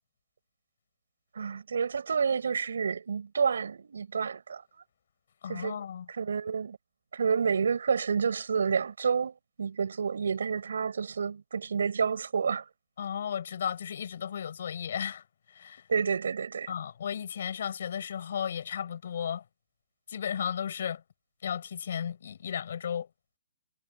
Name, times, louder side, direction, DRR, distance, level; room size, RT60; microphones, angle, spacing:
voice 1, 1.3-4.6 5.5-5.8 6.1-6.8 7.1-12.6 15.9-16.7, right 6 dB, 90° right, 5.7 m, -29 dB
voice 2, 5.4-6.1 13.0-15.2 15.5-15.8 16.7-19.4 20.1-21.0 21.4-23.1, left 8 dB, 60° left, 5.0 m, -34 dB
hypercardioid pair, 170°, 0 cm